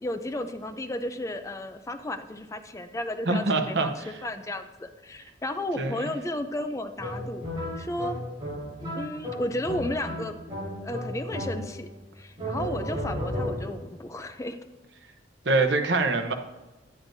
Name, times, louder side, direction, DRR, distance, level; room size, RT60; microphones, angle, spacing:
voice 1, 0.0-7.5 7.8-8.2 8.9-10.3 10.8-11.9 12.2-14.6, left 1 dB, 15° left, 8 dB, 0.4 m, -33 dB
voice 2, 3.2-4.1 5.8-6.1 15.4-16.3, right 3 dB, 70° right, 6 dB, 0.9 m, -25 dB
sound 1, 7.0-12.0 12.4-13.9, equal, 25° right, 3.4 m, -34 dB
10.5 x 9.6 x 2.7 m, 1.1 s
head